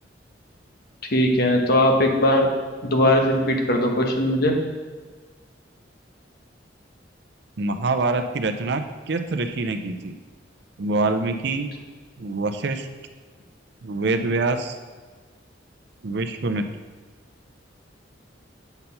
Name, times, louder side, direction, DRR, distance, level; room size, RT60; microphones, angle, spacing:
voice 1, 1.1-2.5 2.8-4.5, left 1 dB, 55° left, 2 dB, 1.1 m, -19 dB
voice 2, 7.6-10.1 10.8-11.7 12.2-12.9 13.8-14.8 16.0-16.7, right 3 dB, 60° right, 8 dB, 0.5 m, -25 dB
7.9 x 4.4 x 5.4 m, 1.4 s
head